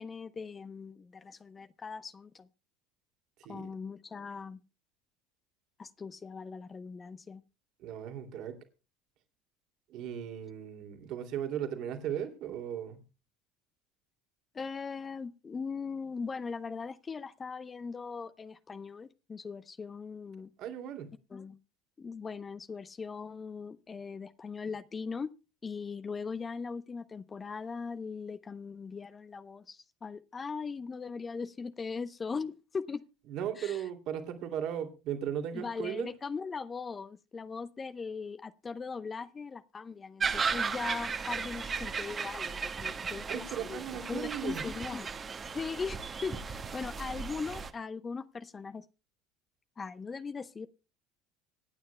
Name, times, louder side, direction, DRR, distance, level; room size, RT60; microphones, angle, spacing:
voice 1, 0.0-2.5 3.5-4.6 5.8-7.4 14.5-20.5 21.3-21.6 22.0-25.3 25.6-33.0 33.6-33.9 35.5-45.1 45.5-48.9 49.8-50.7, left 5 dB, 25° left, 0.8 m, -39 dB
voice 2, 7.8-8.6 9.9-13.0 20.6-21.1 33.3-36.1 43.3-44.6, right 9 dB, 55° right, 2.5 m, -37 dB
Kookaburras in the Victorian Bush, 40.2-47.7, right 5 dB, 30° right, 1.5 m, -36 dB
26.0 x 9.5 x 2.2 m
hypercardioid pair, 70°, 0 cm